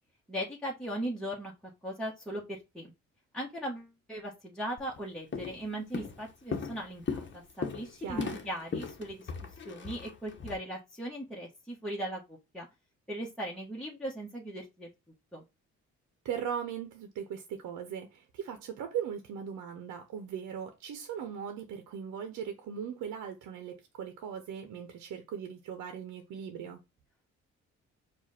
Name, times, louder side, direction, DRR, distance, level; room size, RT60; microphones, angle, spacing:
voice 1, 0.3-1.5 1.8-2.9 3.3-9.3 9.6-12.7 13.1-14.9 15.3-15.4, right 1 dB, 5° left, 1.4 m, -38 dB
Walk footsteps, 4.8-5.0 5.3-5.7 5.9-10.6, left 5 dB, 40° left, 1.1 m, -37 dB
voice 2, 8.0-8.4 16.2-26.8, right 8 dB, 75° right, 0.8 m, -39 dB
4.8 x 2.5 x 4.2 m
cardioid pair, 75°, 30 cm